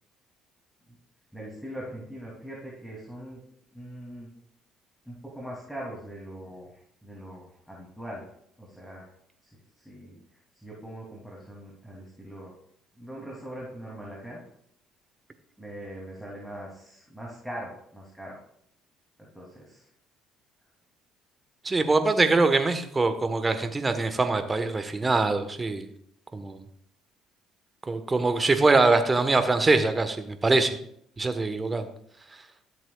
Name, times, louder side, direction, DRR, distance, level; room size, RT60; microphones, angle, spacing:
voice 1, 1.3-3.4 3.7-4.3 5.0-8.3 8.6-9.1 9.8-10.2 10.6-12.5 12.9-14.4 15.6-18.4 19.2-19.9, right 1 dB, ahead, -4 dB, 2.8 m, -41 dB
voice 2, 21.6-25.9 26.3-26.6 27.9-30.7 31.2-31.9, right 3 dB, 25° right, 9 dB, 1.2 m, -23 dB
13.5 x 7.6 x 2.4 m, 0.69 s
hypercardioid pair, 55°, 0 cm